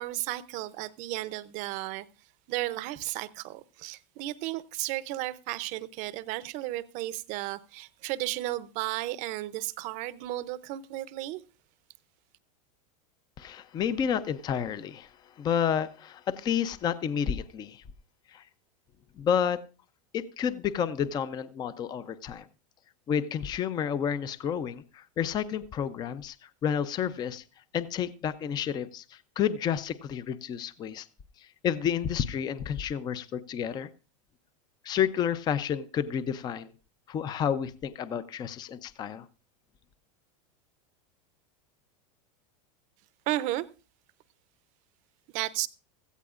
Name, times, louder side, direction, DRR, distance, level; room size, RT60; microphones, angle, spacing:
voice 1, 0.0-2.1 2.5-11.4 43.3-43.7 45.3-45.7, right 16 dB, 45° right, 0.7 m, -34 dB
voice 2, 13.4-15.1 15.4-17.8 18.3-18.4 19.2-19.6 20.1-22.5 23.1-26.4 26.6-27.4 27.7-31.1 31.4-33.9 34.8-36.7 37.1-39.2, left 8 dB, 25° left, 0.6 m, -30 dB
16.5 x 14.5 x 2.5 m
supercardioid pair, 145°, 18 cm